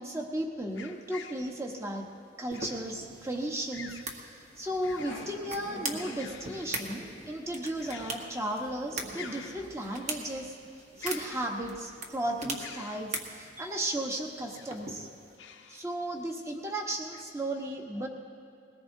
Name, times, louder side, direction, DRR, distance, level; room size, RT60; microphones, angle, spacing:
voice 1, 0.0-2.0 2.4-10.5 11.0-15.1 15.7-18.1, right 1 dB, 15° right, 1 dB, 1.2 m, -35 dB
sound 1, 0.7-1.5 2.5-2.9 3.7-4.1 4.6-5.4 5.8-7.1 7.8-8.5 8.8-8.9 9.1-10.2 11.0-11.9 12.6-13.1 14.3-14.9 15.4-15.8 16.4-16.5 17.1-17.2, left 7 dB, 65° left, 0.8 m, -47 dB
sound 2, 2.5-15.4, right 2 dB, 35° right, 1.3 m, -42 dB
Growling, 5.0-12.7, equal, 85° right, 4.4 m, -49 dB
21.0 x 18.5 x 2.7 m, 2.6 s
head